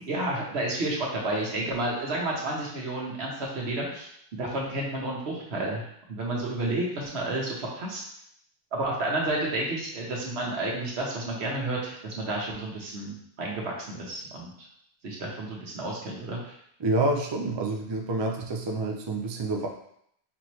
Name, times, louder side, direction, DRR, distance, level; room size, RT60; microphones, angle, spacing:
voice 1, 0.1-4.1 4.4-8.0 8.7-14.5 15.0-16.6, right 2 dB, 70° right, -2 dB, 1.3 m, -31 dB
voice 2, 16.8-19.7, right 2 dB, 45° right, 2 dB, 0.3 m, -28 dB
4.3 x 3.0 x 3.1 m, 0.70 s
omnidirectional pair, 1.1 m